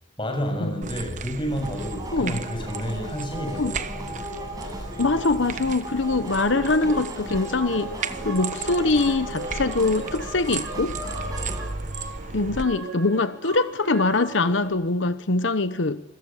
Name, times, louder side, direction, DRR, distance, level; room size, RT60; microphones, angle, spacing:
voice 1, 0.2-4.2, equal, 25° left, 7.0 m, -30 dB
sound 1, 0.8-12.7, right 4 dB, 40° right, 1.1 m, -35 dB
sound 2, 1.5-11.6, right 1 dB, 20° right, 7.7 m, -37 dB
voice 2, 5.0-7.9 8.2-11.0 12.3-16.0, left 3 dB, 85° left, 1.0 m, -23 dB
sound 3, 6.3-14.7, right 3 dB, 75° right, 7.8 m, -38 dB
28.0 x 22.5 x 7.3 m
head